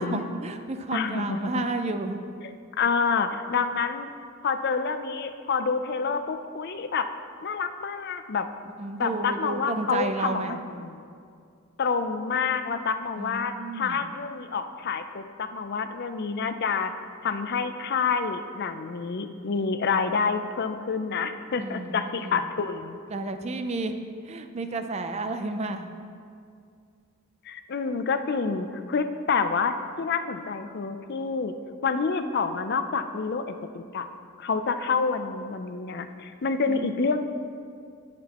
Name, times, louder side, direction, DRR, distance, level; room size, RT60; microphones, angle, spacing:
voice 1, 0.0-2.2 8.8-10.6 13.2-14.0 21.6-22.4 23.1-23.9 24.2-25.9 36.7-36.9, right 2 dB, 30° right, 7 dB, 0.5 m, -32 dB
voice 2, 0.9-1.5 2.8-4.1 4.4-7.1 7.4-8.5 9.0-11.0 11.8-16.9 17.2-23.0 27.4-31.5 31.8-34.1 34.4-37.2, left 5 dB, 50° left, 8 dB, 0.5 m, -28 dB
18.0 x 6.0 x 3.0 m, 2.3 s
head